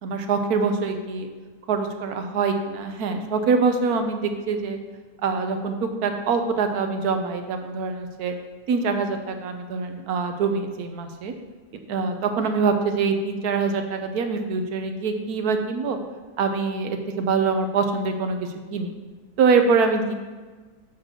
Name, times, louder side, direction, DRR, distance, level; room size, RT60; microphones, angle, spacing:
voice 1, 0.0-1.3 1.7-4.8 5.2-8.3 8.7-11.3 11.9-16.0 16.4-18.4 18.7-18.9 19.4-20.1, right 4 dB, 80° right, 6 dB, 1.3 m, -24 dB
7.5 x 3.7 x 6.5 m, 1.3 s
omnidirectional pair, 1.6 m